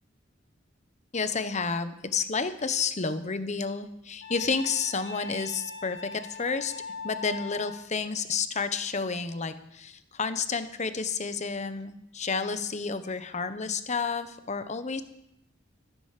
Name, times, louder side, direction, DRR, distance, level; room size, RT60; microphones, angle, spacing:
voice 1, 1.1-6.7 7.0-15.0, left 5 dB, 35° left, 11 dB, 1.0 m, -30 dB
Wind instrument woodwind instrument, 4.2-7.9, left 5 dB, 65° left, 5.9 m, -40 dB
14.0 x 10.0 x 6.7 m, 0.80 s
head